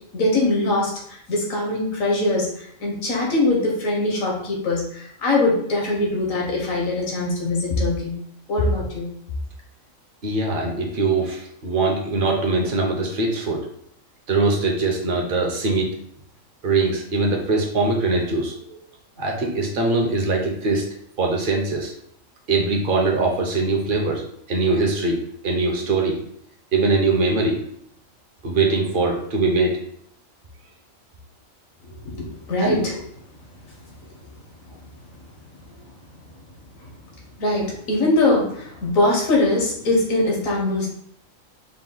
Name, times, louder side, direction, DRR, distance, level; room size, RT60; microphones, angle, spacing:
voice 1, 0.1-8.1 8.5-9.1 31.8-33.0 37.4-40.9, left 2 dB, 80° left, -2 dB, 1.5 m, -22 dB
voice 2, 10.2-13.6 14.3-15.9 16.6-18.5 19.2-20.8 21.2-21.9 22.5-25.2 25.4-26.2 26.7-27.6 28.4-29.8 32.6-32.8, right 3 dB, 45° right, 0 dB, 1.0 m, -22 dB
4.7 x 2.4 x 3.8 m, 0.68 s
omnidirectional pair, 1.4 m